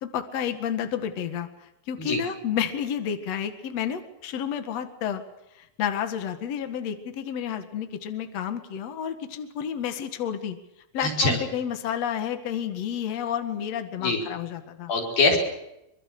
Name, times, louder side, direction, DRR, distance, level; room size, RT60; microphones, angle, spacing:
voice 1, 0.0-5.2 5.6-10.6 10.9-14.9, left 8 dB, 60° left, 8 dB, 1.7 m, -30 dB
voice 2, 11.0-11.4 14.0-14.2 14.9-15.4, left 3 dB, 45° left, 1 dB, 6.7 m, -23 dB
24.5 x 24.5 x 6.7 m, 0.87 s
omnidirectional pair, 5.9 m